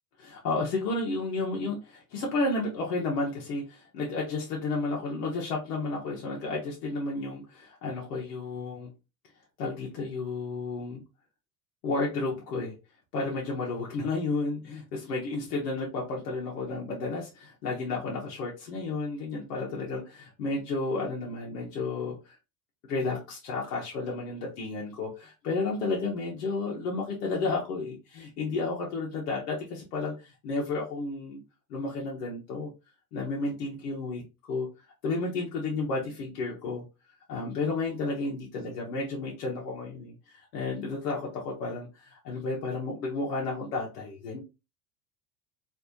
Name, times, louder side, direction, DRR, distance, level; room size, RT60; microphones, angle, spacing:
voice 1, 0.2-8.9 9.6-11.0 11.8-12.7 13.1-22.4 22.8-31.4 31.7-32.7 33.1-34.2 34.5-34.7 35.0-36.8 37.3-44.4, left 3 dB, 80° left, -2 dB, 1.1 m, -32 dB
3.3 x 2.6 x 2.7 m, 0.28 s
hypercardioid pair, 90°, 47 cm